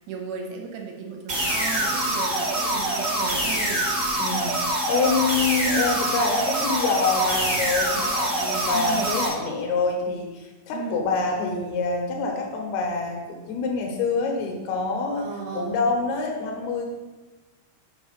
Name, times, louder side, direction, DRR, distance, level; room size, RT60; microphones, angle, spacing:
voice 1, 0.1-3.9 8.7-9.2 10.7-11.0 15.1-15.8, right 5 dB, 75° right, 1 dB, 2.8 m, -35 dB
sound 1, 1.3-9.3, right 1 dB, 30° right, 1.1 m, -25 dB
voice 2, 4.2-15.3 15.5-16.9, left 4 dB, 75° left, 1 dB, 2.8 m, -26 dB
6.3 x 4.4 x 6.5 m, 1.2 s
omnidirectional pair, 4.6 m